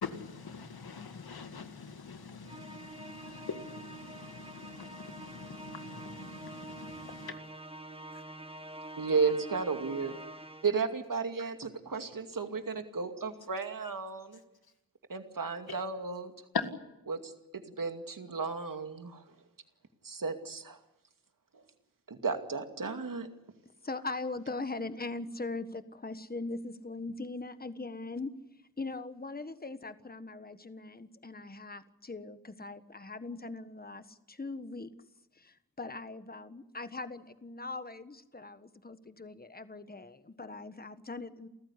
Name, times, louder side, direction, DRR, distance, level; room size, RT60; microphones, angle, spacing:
voice 1, 0.0-7.4 16.5-16.7, left 5 dB, 85° left, 2.2 m, -42 dB
Musical instrument, 2.5-10.9, right 2 dB, 15° right, 1.7 m, -46 dB
voice 2, 9.0-10.2 10.6-14.4 15.1-16.3 17.1-19.3 20.0-20.8 21.5-21.6 22.1-23.3, right 4 dB, 60° right, 2.5 m, -34 dB
voice 3, 23.8-28.3 28.8-34.9 35.3-41.5, left 3 dB, 25° left, 1.5 m, -40 dB
29.0 x 15.0 x 10.0 m
wide cardioid pair, 65°, 36 cm